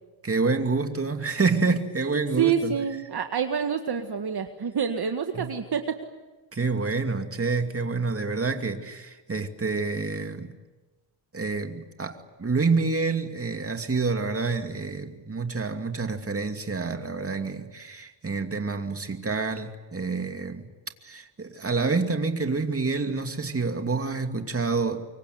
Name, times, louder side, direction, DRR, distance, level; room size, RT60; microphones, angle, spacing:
voice 1, 0.2-2.8 5.3-5.6 6.5-10.6 11.3-20.7 21.0-25.0, right 4 dB, 30° right, 6 dB, 2.6 m, -28 dB
voice 2, 2.4-5.8, right 7 dB, 50° right, 6 dB, 1.9 m, -27 dB
25.5 x 23.5 x 9.5 m, 1.2 s
cardioid pair, 75°, 48 cm